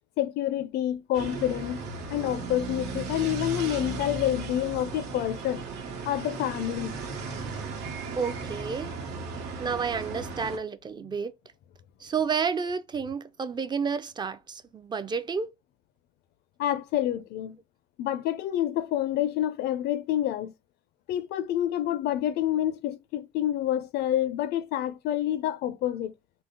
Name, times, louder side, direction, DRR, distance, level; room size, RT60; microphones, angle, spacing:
voice 1, 0.2-1.8 2.1-5.6 6.1-7.0 16.6-17.6 18.0-20.5 21.1-26.1, left 12 dB, 75° left, 0.5 m, -28 dB
sound 1, 1.1-10.6, right 4 dB, 90° right, 1.1 m, -36 dB
voice 2, 8.2-8.9 9.6-11.3 12.0-15.5, right 6 dB, 25° right, 0.4 m, -30 dB
3.9 x 2.1 x 3.7 m
cardioid pair, 110°, 17 cm